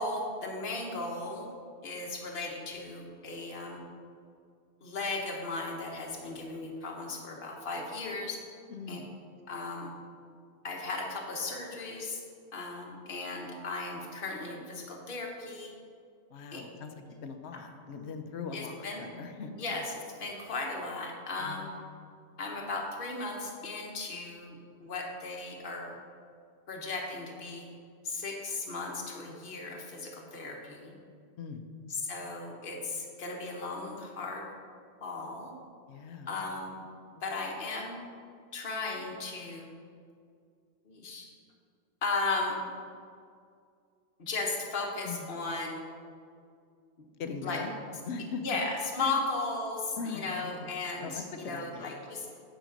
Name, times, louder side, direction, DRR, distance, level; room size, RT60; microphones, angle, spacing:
voice 1, 0.0-1.5 1.8-3.8 4.8-8.4 8.9-9.0 9.5-10.0 10.6-12.2 12.5-15.7 16.5-16.6 17.5-17.6 18.5-19.0 19.5-21.7 22.4-25.9 26.7-27.7 28.0-30.9 31.9-34.5 35.0-35.5 36.3-36.8 37.2-38.0 38.5-39.7 40.8-41.3 42.0-42.6 44.2-45.8 47.4-47.6 48.4-52.3, left 3 dB, 55° left, -1 dB, 1.3 m, -36 dB
voice 2, 8.7-9.1 16.3-16.9 17.2-19.5 21.4-21.7 31.4-31.6 35.9-36.3 45.0-45.2 47.2-47.7 48.1-48.4 49.0-49.2 50.0-50.7 51.0-51.9, left 5 dB, 85° left, 6 dB, 1.0 m, -40 dB
9.0 x 5.1 x 5.1 m, 2.2 s
omnidirectional pair, 1.1 m